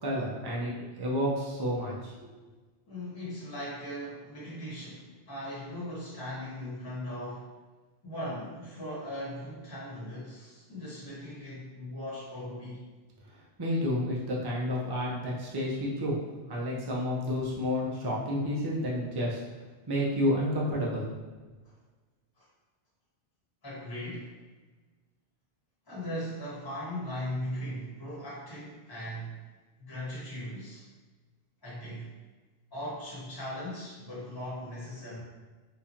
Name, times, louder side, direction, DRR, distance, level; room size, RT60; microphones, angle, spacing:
voice 1, 0.0-2.3 13.6-16.2 16.5-19.4 19.9-21.1, equal, 25° right, -4 dB, 0.6 m, -30 dB
voice 2, 2.9-7.5 8.0-12.8 22.4-22.5 23.6-24.3 25.9-29.5 29.8-30.8 31.6-32.2 32.7-35.2, equal, 20° left, -7 dB, 1.1 m, -39 dB
3.6 x 2.9 x 2.9 m, 1.3 s
omnidirectional pair, 1.2 m